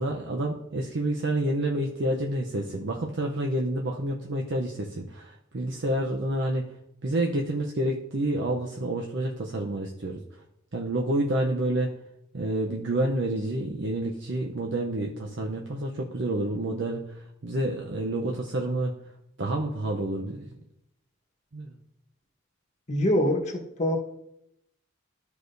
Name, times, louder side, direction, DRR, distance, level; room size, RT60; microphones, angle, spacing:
voice 1, 0.0-6.7 7.0-10.2 10.7-11.9 12.3-19.0 19.4-20.6 21.5-21.8, right 1 dB, 60° right, 0 dB, 0.7 m, -29 dB
voice 2, 22.9-24.0, equal, 35° left, 1 dB, 1.2 m, -24 dB
13.5 x 4.8 x 2.6 m, 0.79 s
head